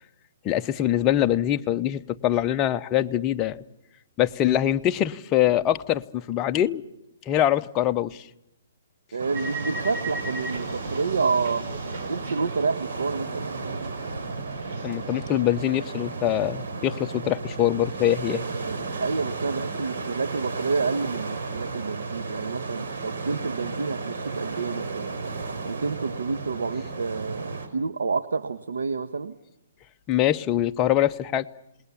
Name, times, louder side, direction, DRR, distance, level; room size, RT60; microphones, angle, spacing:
voice 1, 0.4-3.6 4.2-6.8 7.3-8.2 14.8-18.4 30.1-31.5, left 12 dB, 20° left, 8 dB, 0.8 m, -23 dB
voice 2, 9.1-11.6 12.1-13.5 18.2-25.1 25.7-29.4, right 4 dB, 85° right, 10 dB, 1.2 m, -29 dB
sound 1, 9.2-27.7, right 3 dB, 65° right, 5.3 m, -34 dB
sound 2, 9.3-13.3 13.5-15.4, right 2 dB, 45° right, 5.6 m, -38 dB
28.0 x 20.5 x 7.1 m, 0.89 s
hypercardioid pair, 155°, 0 cm